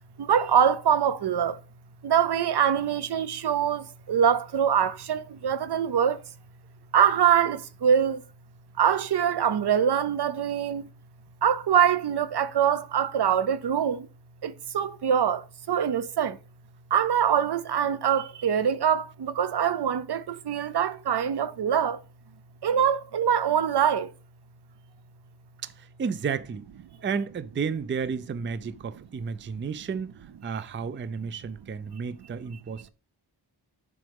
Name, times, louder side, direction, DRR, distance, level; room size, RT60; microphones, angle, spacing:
voice 1, 0.2-1.6 2.0-6.2 6.9-8.2 8.8-10.9 11.4-14.1 14.4-16.4 16.9-22.0 22.6-24.1, right 8 dB, 70° right, 0.7 m, -24 dB
voice 2, 25.6-26.7 27.0-32.9, right 6 dB, 30° right, 0.4 m, -32 dB
7.6 x 5.2 x 3.5 m
wide cardioid pair, 105°, 42 cm